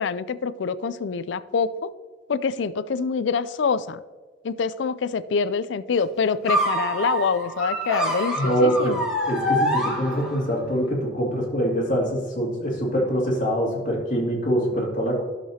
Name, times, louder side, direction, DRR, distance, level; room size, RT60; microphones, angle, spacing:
voice 1, 0.0-1.9 2.3-4.0 4.4-9.0, left 5 dB, 80° left, 15 dB, 0.4 m, -25 dB
sound 1, 6.4-10.6, equal, 5° right, 2.1 m, -26 dB
voice 2, 8.3-8.9 9.3-15.2, equal, 45° left, -3 dB, 2.5 m, -24 dB
12.0 x 6.7 x 2.9 m, 1.4 s
head